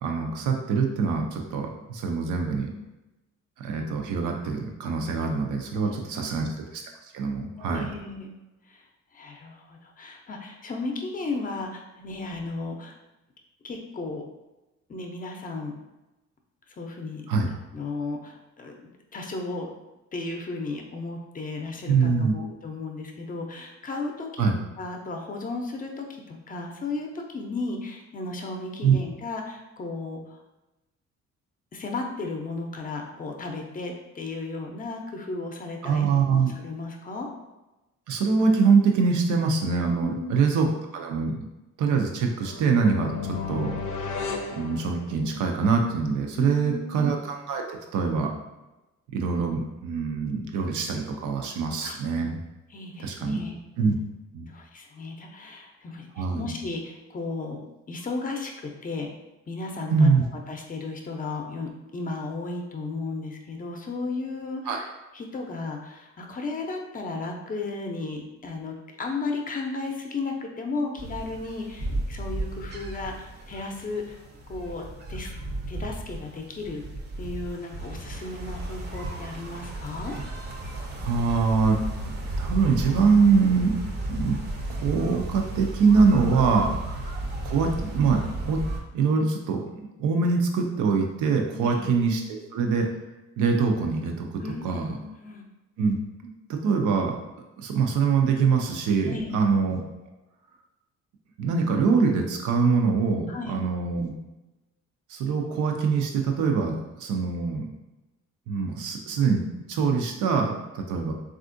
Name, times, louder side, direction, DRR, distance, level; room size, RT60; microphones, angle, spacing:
voice 1, 0.0-2.7 3.6-6.5 7.1-7.9 17.3-17.5 21.9-22.3 24.4-24.5 28.8-28.9 35.8-36.5 38.1-40.7 40.9-41.4 41.8-44.1 44.6-48.3 49.1-52.4 53.0-53.4 53.8-54.0 54.3-54.5 56.2-56.5 59.9-60.2 64.7-64.8 81.0-83.8 84.1-84.4 84.8-86.8 87.4-88.6 88.9-92.2 92.5-92.9 93.4-94.3 94.6-94.9 95.8-96.0 96.5-97.2 97.6-99.8 101.4-104.1 105.1-107.7 108.5-111.1, right 5 dB, 85° right, 2 dB, 0.6 m, -24 dB
voice 2, 5.7-6.5 7.6-8.3 8.7-8.8 9.1-12.9 13.6-14.2 14.9-15.7 16.8-17.3 17.7-18.8 19.1-19.7 20.1-30.4 31.7-37.3 40.0-40.3 46.3-47.1 51.8-52.0 52.7-53.6 54.5-57.6 57.9-59.1 59.5-60.1 60.5-74.2 74.5-75.3 75.7-76.8 77.2-80.2 91.6-91.9 94.4-95.5 99.1-99.4 103.3-103.6, left 3 dB, 30° left, 2 dB, 0.5 m, -34 dB
sound 1, 42.4-45.5, left 5 dB, 75° left, 0.5 m, -34 dB
sound 2, 71.0-88.8, right 1 dB, 35° right, 0.6 m, -34 dB
3.4 x 2.4 x 2.5 m, 1.0 s
cardioid pair, 90°, 30 cm